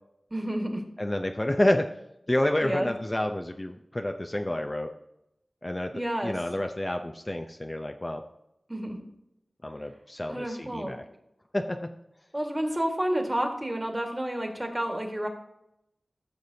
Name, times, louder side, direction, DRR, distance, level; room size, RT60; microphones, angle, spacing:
voice 1, 0.3-0.8 2.6-2.9 5.9-6.4 8.7-9.0 10.3-11.0 12.3-15.3, right 1 dB, 20° right, 3 dB, 1.8 m, -30 dB
voice 2, 1.0-1.9 2.3-4.9 5.6-5.9 6.2-8.2 9.6-11.0 11.5-11.7, left 1 dB, 25° left, 5 dB, 0.6 m, -29 dB
14.0 x 6.1 x 2.8 m, 0.81 s
wide cardioid pair, 55°, 0 cm